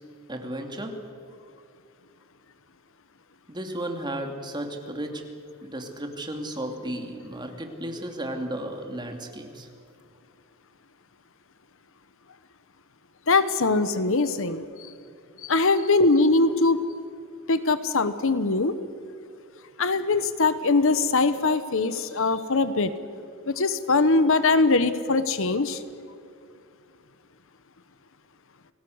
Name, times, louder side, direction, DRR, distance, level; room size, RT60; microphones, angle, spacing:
voice 1, 0.3-1.0 3.5-5.2 5.6-9.7, right 1 dB, 20° right, 4 dB, 2.7 m, -34 dB
voice 2, 13.3-14.6 15.4-16.8 17.5-18.7 19.8-22.9 23.5-25.8, left 3 dB, 60° left, 13 dB, 1.1 m, -22 dB
29.5 x 19.5 x 8.0 m, 2.4 s
head